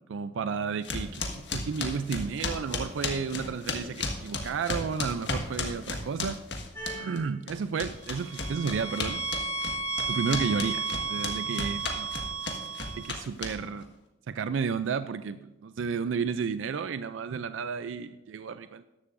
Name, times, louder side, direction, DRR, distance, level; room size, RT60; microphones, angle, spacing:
voice 1, 0.1-6.4 6.9-9.2 10.1-12.1 12.9-13.9 14.3-18.8, right 6 dB, 90° right, 11 dB, 0.4 m, -32 dB
sound 1, 0.8-7.2 7.5-13.8, left 3 dB, 65° left, 1.5 m, -34 dB
sound 2, 6.8-7.3 8.0-13.1, right 4 dB, 15° left, 4.1 m, -34 dB
14.0 x 11.5 x 2.6 m, 1.0 s
head